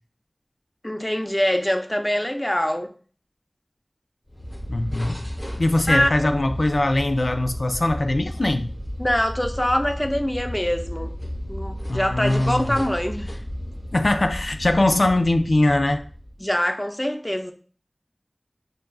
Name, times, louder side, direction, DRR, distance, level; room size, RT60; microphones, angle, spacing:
voice 1, 0.8-2.9 5.9-6.4 9.0-11.1 11.5-13.4 16.4-17.5, equal, 20° left, 0.5 m, -24 dB
sound 1, 4.3-16.5, equal, 40° left, 1.0 m, -33 dB
voice 2, 4.7-5.2 5.6-8.7 11.9-12.8 13.9-16.0, left 2 dB, 85° left, 0.3 m, -21 dB
6.4 x 2.3 x 2.3 m
wide cardioid pair, 45°, 0 cm